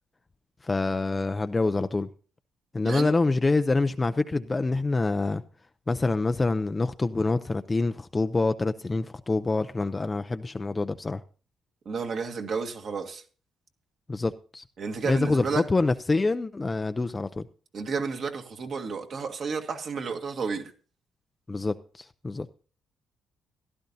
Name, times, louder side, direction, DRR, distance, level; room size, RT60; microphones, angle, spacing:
voice 1, 0.6-2.1 2.7-5.4 5.9-11.2 14.1-14.6 15.1-17.5 21.5-22.6, left 3 dB, 25° left, 0.5 m, -26 dB
voice 2, 11.9-13.2 14.8-15.6 17.7-20.7, right 5 dB, 55° right, 2.0 m, -31 dB
15.5 x 12.0 x 2.8 m
cardioid pair, 90°, 0 cm